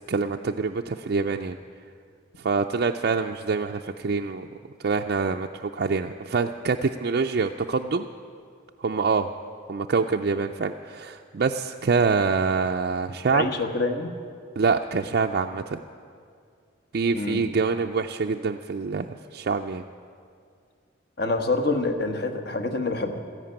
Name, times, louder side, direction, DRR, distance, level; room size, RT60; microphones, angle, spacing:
voice 1, 0.1-1.6 2.4-4.5 4.8-8.1 8.8-9.3 9.7-13.5 14.6-15.8 16.9-19.8, right 4 dB, 50° right, 3 dB, 0.4 m, -25 dB
voice 2, 13.3-14.1 17.1-17.4 21.2-23.2, left 3 dB, 50° left, 7 dB, 1.2 m, -26 dB
14.0 x 11.0 x 8.8 m, 2.2 s
head